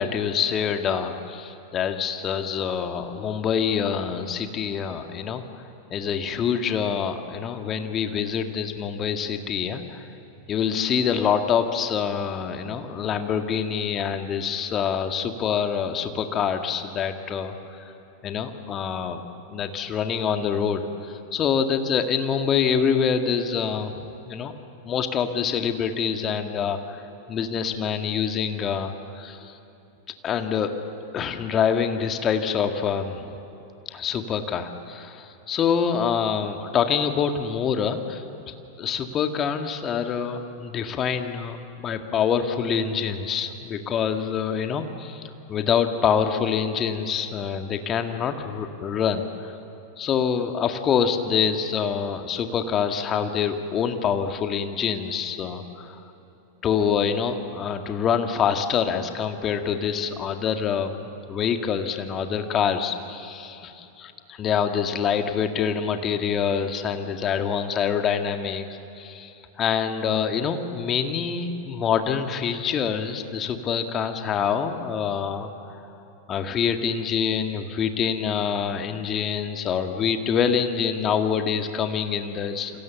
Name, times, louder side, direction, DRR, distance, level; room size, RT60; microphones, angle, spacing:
voice 1, 0.0-5.4 5.9-10.1 10.5-17.8 18.2-19.2 19.5-24.0 24.3-24.5 24.8-27.0 27.3-29.6 30.2-30.7 31.1-33.3 33.9-45.2 45.5-49.5 50.0-56.0 56.6-68.7 69.0-75.8 76.3-82.7, left 7 dB, 30° left, 6 dB, 2.0 m, -26 dB
28.5 x 26.0 x 7.1 m, 2.9 s
figure-of-eight pair, 90°, 0 cm